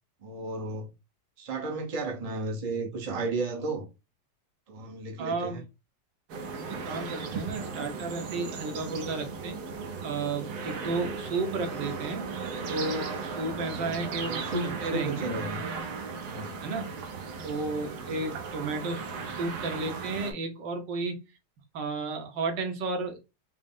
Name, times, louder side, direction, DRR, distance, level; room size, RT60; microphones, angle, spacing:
voice 1, 0.2-0.9 1.4-3.9 4.7-5.6 13.7-15.6 16.3-16.6, right 2 dB, 35° right, 0.6 m, -34 dB
voice 2, 5.2-5.6 6.7-9.6 10.0-12.3 12.7-15.3 16.6-16.9 17.4-21.2 21.7-23.2, right 3 dB, 80° right, 1.5 m, -33 dB
sound 1, 6.3-20.3, right 5 dB, 65° right, 1.2 m, -36 dB
4.9 x 2.0 x 3.5 m
omnidirectional pair, 1.9 m